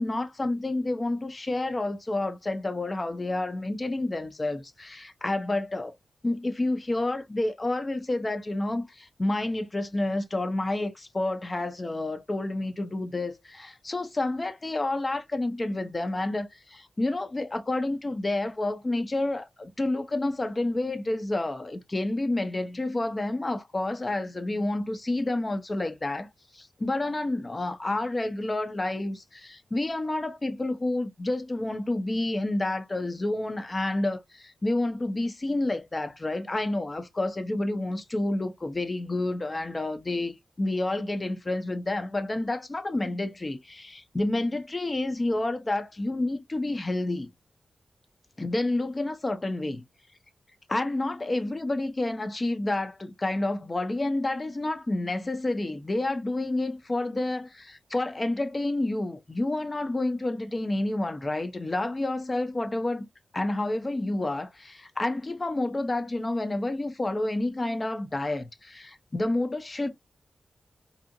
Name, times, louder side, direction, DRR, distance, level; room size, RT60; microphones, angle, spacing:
voice 1, 0.0-5.9 6.2-47.3 48.4-49.8 50.7-63.1 63.3-69.9, left 2 dB, 30° left, 0.6 m, -29 dB
2.7 x 2.4 x 2.5 m
cardioid pair, 75°, 0 cm